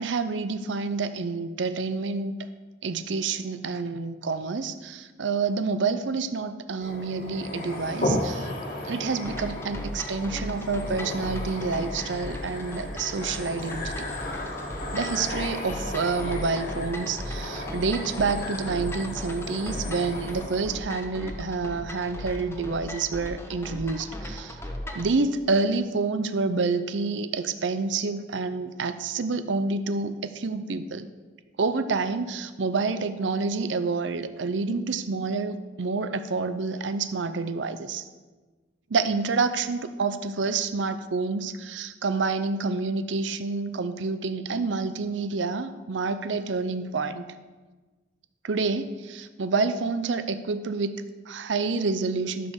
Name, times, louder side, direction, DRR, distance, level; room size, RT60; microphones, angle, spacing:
voice 1, 0.0-2.3 2.8-8.5 8.8-13.9 14.9-24.6 24.9-31.1 31.6-38.0 38.9-47.2 48.4-52.5, right 4 dB, 90° right, 11 dB, 0.6 m, -28 dB
sound 1, 6.8-20.8, left 1 dB, 55° left, 1.8 m, -34 dB
sound 2, 9.2-25.1, left 1 dB, 15° left, 1.0 m, -37 dB
12.5 x 5.4 x 6.5 m, 1.3 s
head